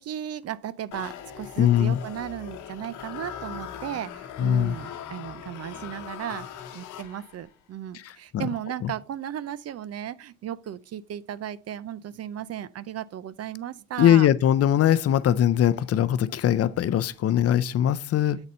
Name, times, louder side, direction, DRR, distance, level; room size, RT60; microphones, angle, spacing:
voice 1, 0.0-6.5 6.7-14.3, right 10 dB, 55° right, 0.5 m, -35 dB
sound 1, 0.9-7.5, left 9 dB, 85° left, 0.9 m, -40 dB
voice 2, 1.6-2.0 4.4-4.7 7.9-8.0 8.3-8.5 8.8-8.9 14.0-18.4, left 10 dB, 55° left, 0.5 m, -21 dB
7.8 x 4.1 x 4.1 m
cardioid pair, 90°, 30 cm